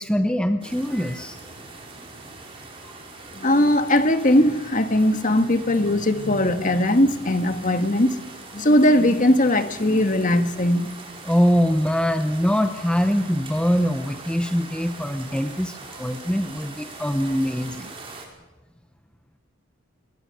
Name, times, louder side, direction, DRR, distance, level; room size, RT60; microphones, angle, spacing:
voice 1, 0.0-1.4 2.8-3.0 11.2-17.9, equal, 5° left, 0.8 m, -23 dB
sound 1, 0.6-18.3, right 3 dB, 25° right, 5.2 m, -42 dB
voice 2, 3.3-8.2 8.5-10.9, left 1 dB, 40° left, 1.6 m, -19 dB
26.0 x 22.0 x 6.7 m
head